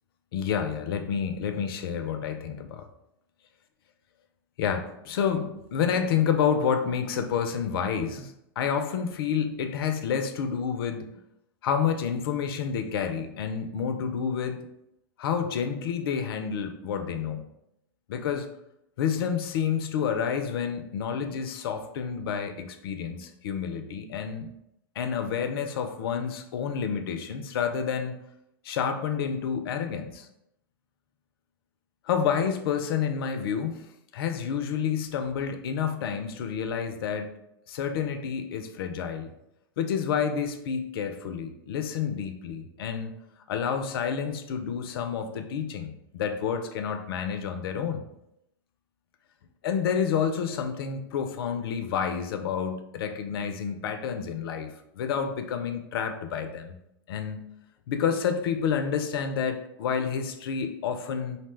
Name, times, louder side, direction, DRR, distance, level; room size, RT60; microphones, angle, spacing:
voice 1, 0.3-2.9 4.6-11.2 11.6-14.6 15.2-17.5 18.1-18.5 19.0-24.5 25.0-28.2 28.6-30.3 32.1-33.9 34.1-37.3 37.7-39.3 39.8-43.2 43.5-48.0 49.6-56.7 57.1-57.4 57.9-61.4, left 7 dB, 70° left, 7 dB, 0.4 m, -29 dB
2.7 x 2.1 x 3.1 m, 0.81 s
hypercardioid pair, 105°, 13 cm